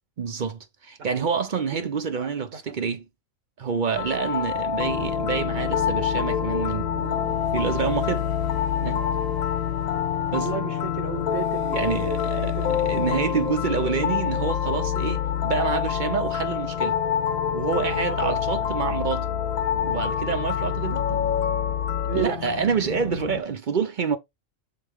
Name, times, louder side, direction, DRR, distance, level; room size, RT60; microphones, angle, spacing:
voice 1, 0.2-3.0 3.6-8.2 8.8-9.0 10.3-10.5 11.7-17.0 17.5-19.3 19.8-21.2 22.1-24.2, right 6 dB, 50° right, 0.7 m, -27 dB
voice 2, 1.7-2.5 10.4-13.4 18.1-18.4 22.1-22.4, right 7 dB, 70° right, 1.3 m, -34 dB
sound 1, 4.0-22.3, left 9 dB, 90° left, 1.1 m, -27 dB
sound 2, 4.8-23.4, left 8 dB, 50° left, 0.7 m, -33 dB
6.7 x 3.9 x 3.6 m
omnidirectional pair, 1.4 m